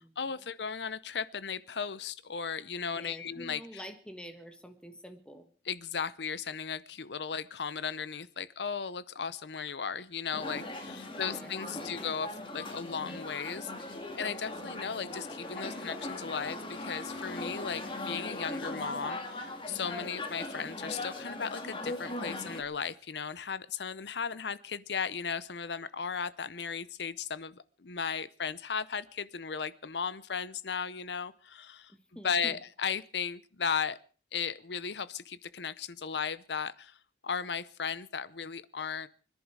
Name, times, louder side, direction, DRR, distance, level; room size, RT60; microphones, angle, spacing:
voice 1, 0.0-3.8 5.7-31.9 32.2-34.0 34.3-37.0 37.2-39.1, left 6 dB, 70° left, 17 dB, 0.7 m, -36 dB
voice 2, 2.9-5.5 11.0-11.9 31.9-32.6, equal, 5° left, 7 dB, 1.5 m, -48 dB
sound 1, 10.3-22.6, left 2 dB, 30° left, 2.4 m, -39 dB
24.5 x 11.0 x 4.8 m, 0.41 s
head